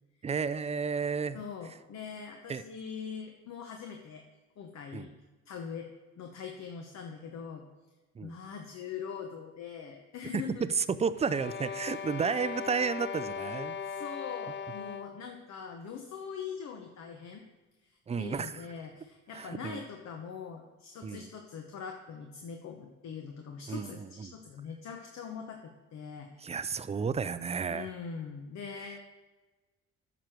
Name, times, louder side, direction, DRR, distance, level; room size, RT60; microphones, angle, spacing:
voice 1, 0.2-1.4 2.5-2.6 4.9-5.1 8.2-8.3 10.3-10.4 10.8-13.8 18.1-18.6 19.3-19.8 21.0-21.3 23.7-24.3 26.4-27.9 28.8-28.9, right 6 dB, 20° right, 14 dB, 0.4 m, -32 dB
voice 2, 1.3-4.2 4.6-5.1 5.5-5.9 6.2-7.6 8.2-10.6 11.8-12.0 13.8-17.4 17.8-26.6 27.7-29.0, left 6 dB, 65° left, 4 dB, 0.9 m, -42 dB
sound 1, 11.1-15.3, left 6 dB, 40° left, 0.5 m, -38 dB
9.2 x 6.1 x 4.6 m, 1.2 s
cardioid pair, 90°, 30 cm